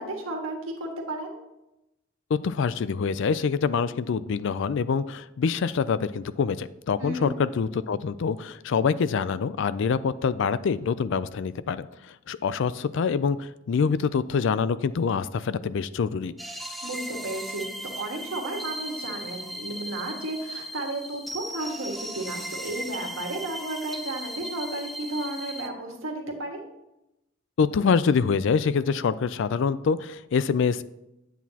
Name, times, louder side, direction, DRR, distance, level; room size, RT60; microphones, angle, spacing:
voice 1, 0.0-1.4 7.0-7.3 16.8-26.6, right 2 dB, 80° right, 1 dB, 1.6 m, -33 dB
voice 2, 2.4-16.3 27.6-30.8, left 5 dB, 65° left, 16 dB, 0.4 m, -25 dB
sound 1, 16.4-25.7, equal, ahead, 0.6 m, -37 dB
9.1 x 8.1 x 2.9 m, 0.90 s
head